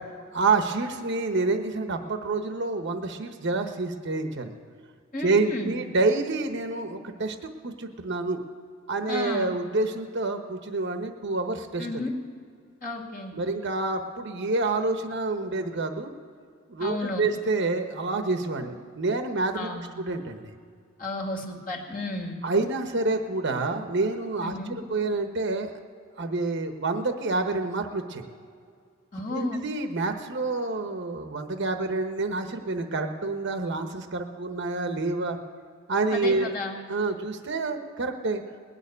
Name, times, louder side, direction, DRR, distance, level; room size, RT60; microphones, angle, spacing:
voice 1, 0.3-4.5 5.2-8.4 8.9-11.9 13.3-16.1 16.7-19.7 20.0-20.5 22.4-24.6 24.9-25.7 26.2-28.2 29.3-35.4 35.9-36.5 36.9-38.4, right 3 dB, 55° right, 6 dB, 1.0 m, -28 dB
voice 2, 5.1-5.7 9.1-9.5 11.8-12.1 12.8-13.4 16.8-17.3 19.5-19.9 21.0-22.4 24.4-24.8 29.1-29.6 36.1-36.8, left 2 dB, 40° left, 1 dB, 2.0 m, -33 dB
20.0 x 6.8 x 9.7 m, 2.3 s
head